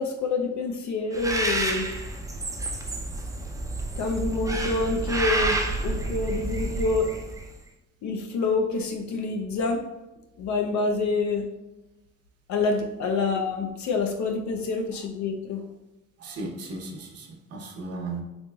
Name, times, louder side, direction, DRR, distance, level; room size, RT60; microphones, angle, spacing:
voice 1, 0.0-1.9 4.0-5.6 5.8-7.1 8.0-9.8 10.4-11.5 12.5-15.6, left 3 dB, 70° left, 3 dB, 0.5 m, -27 dB
Bird, 1.1-7.5, right 2 dB, 10° right, 0.4 m, -29 dB
voice 2, 16.2-18.2, right 3 dB, 55° right, 0 dB, 0.8 m, -36 dB
4.3 x 2.9 x 2.3 m, 1.0 s
cardioid pair, 90°, 30 cm